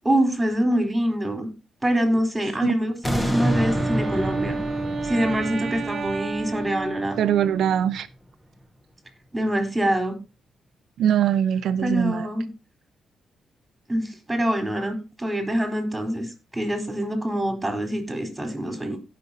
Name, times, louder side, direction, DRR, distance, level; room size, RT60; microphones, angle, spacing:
voice 1, 0.0-1.5 1.8-4.6 5.0-7.2 9.3-10.2 11.8-12.5 13.9-19.0, right 1 dB, 15° right, 4.0 m, -25 dB
sound 1, 3.0-8.1 8.6-8.7, equal, 10° left, 1.6 m, -29 dB
Wind instrument woodwind instrument, 3.2-7.9, right 4 dB, 45° right, 1.6 m, -31 dB
voice 2, 7.2-8.1 11.0-12.3, right 9 dB, 75° right, 0.7 m, -22 dB
17.0 x 6.3 x 2.8 m
cardioid pair, 80°, 0 cm